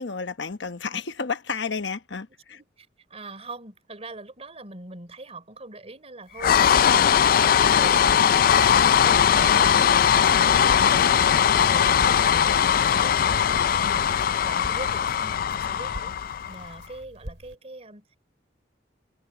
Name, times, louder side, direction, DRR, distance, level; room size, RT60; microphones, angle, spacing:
voice 1, 0.0-2.6 12.0-12.1 12.5-12.6 13.8-14.0, left 5 dB, 75° left, 1.1 m, -32 dB
voice 2, 2.5-13.5 13.8-16.2 16.5-18.2, right 2 dB, 35° right, 4.0 m, -42 dB
sound 1, 6.4-16.7, left 8 dB, 55° left, 0.4 m, -20 dB
Crackle, 6.7-17.6, equal, 85° right, 5.1 m, -44 dB
head